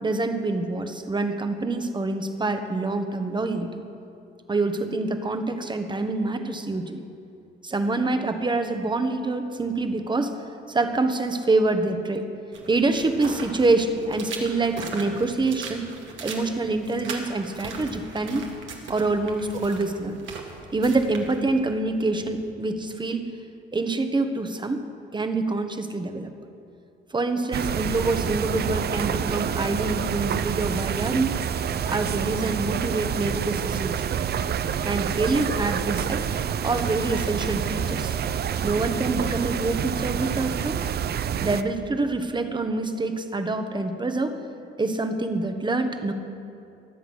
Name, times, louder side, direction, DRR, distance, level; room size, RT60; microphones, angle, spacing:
voice 1, 0.0-3.8 4.5-7.0 7.6-10.4 10.7-12.3 12.7-15.9 16.2-18.4 18.9-20.2 20.7-23.3 23.7-24.8 25.1-26.3 27.1-31.4 31.9-34.1 34.8-36.3 36.6-38.2 38.6-40.8 41.4-44.4 44.8-46.1, right 2 dB, 25° right, 7 dB, 1.3 m, -26 dB
sound 1, 12.5-22.5, right 4 dB, 75° right, 2.1 m, -39 dB
sound 2, 27.5-41.6, right 8 dB, 55° right, 0.6 m, -27 dB
22.5 x 7.8 x 6.3 m, 2.7 s
cardioid pair, 90°, 20 cm